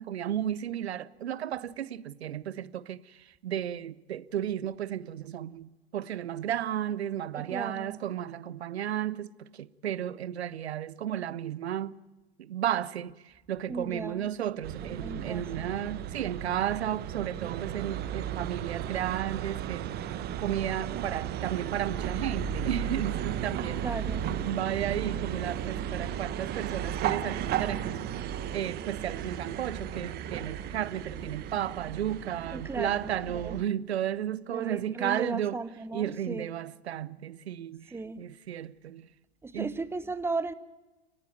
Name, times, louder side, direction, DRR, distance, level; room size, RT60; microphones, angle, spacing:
voice 1, 0.0-3.0 3.4-11.9 12.4-13.1 13.5-23.9 24.3-28.1 28.5-35.6 35.9-37.9 38.2-39.1 39.5-39.8, right 10 dB, 75° right, 0.8 m, -33 dB
voice 2, 7.4-8.0 13.7-14.3 14.9-15.7 17.4-17.6 23.8-24.2 32.5-33.6 34.5-36.5 37.9-38.2 39.4-40.5, right 3 dB, 5° right, 0.7 m, -36 dB
sound 1, 14.6-33.6, right 10 dB, 30° right, 1.1 m, -35 dB
29.0 x 10.0 x 9.3 m
hypercardioid pair, 105°, 32 cm